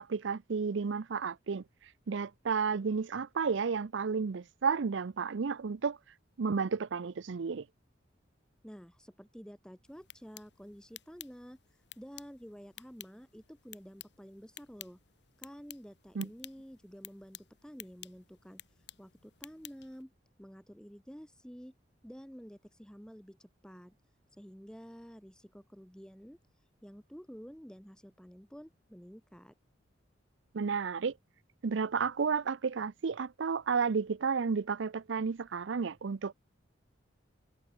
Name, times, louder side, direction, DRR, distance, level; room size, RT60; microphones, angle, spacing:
voice 1, 0.0-1.6 2.1-6.0 6.4-7.6 16.2-16.3 30.5-31.1 31.6-36.3, right 5 dB, 75° right, 0.5 m, -32 dB
voice 2, 8.6-11.6 12.0-15.0 15.4-18.6 19.0-20.1 20.4-21.7 22.0-24.0 24.4-26.4 26.8-29.5, equal, 5° left, 2.8 m, -50 dB
sound 1, 9.8-20.0, left 13 dB, 60° left, 5.1 m, -53 dB
head